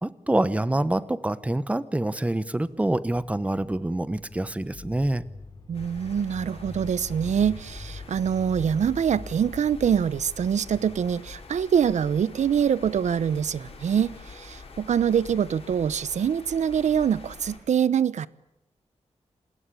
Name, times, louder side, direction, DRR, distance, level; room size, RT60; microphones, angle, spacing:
voice 1, 0.0-5.2, right 1 dB, 10° right, 1.0 m, -26 dB
sound 1, 3.8-12.6, left 3 dB, 35° left, 6.4 m, -44 dB
sound 2, 5.7-17.6, left 3 dB, 55° left, 7.1 m, -45 dB
voice 2, 5.7-18.3, right 8 dB, 85° right, 0.9 m, -24 dB
27.5 x 20.5 x 8.4 m
wide cardioid pair, 165°, 12 cm